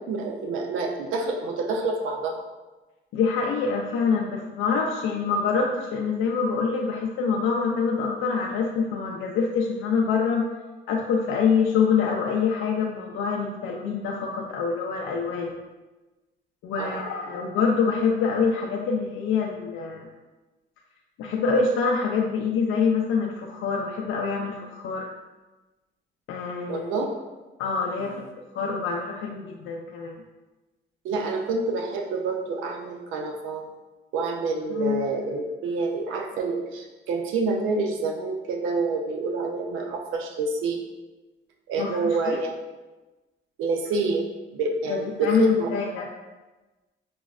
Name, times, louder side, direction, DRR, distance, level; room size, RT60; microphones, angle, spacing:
voice 1, 0.1-2.4 16.8-17.3 26.7-27.1 28.0-28.2 31.0-33.7 34.1-40.8 41.7-42.5 43.6-44.3 44.5-45.7, right 3 dB, 85° right, 2 dB, 0.4 m, -27 dB
voice 2, 3.1-10.4 10.9-15.5 16.6-20.1 21.2-25.1 26.3-26.9 27.6-28.1 28.5-30.2 34.7-35.1 41.8-42.4 44.9-46.1, left 5 dB, 85° left, -1 dB, 0.4 m, -25 dB
6.0 x 2.0 x 2.3 m, 1.2 s
cardioid pair, 90°, 20 cm